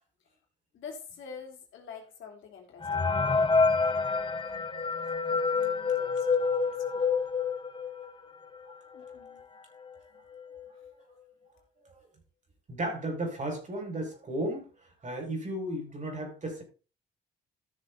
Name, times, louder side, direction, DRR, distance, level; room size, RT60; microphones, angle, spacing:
voice 1, 0.7-3.4 5.3-7.0 8.9-9.4, left 6 dB, 75° left, 3.2 m, -47 dB
sound 1, 2.8-8.2 8.7-8.8 9.0-9.1 9.9-10.0 10.3-10.7, left 4 dB, 25° left, 1.1 m, -27 dB
voice 2, 12.7-14.6 15.0-16.6, right 1 dB, 40° right, 5.3 m, -34 dB
14.0 x 6.4 x 4.0 m
cardioid pair, 90°, 20 cm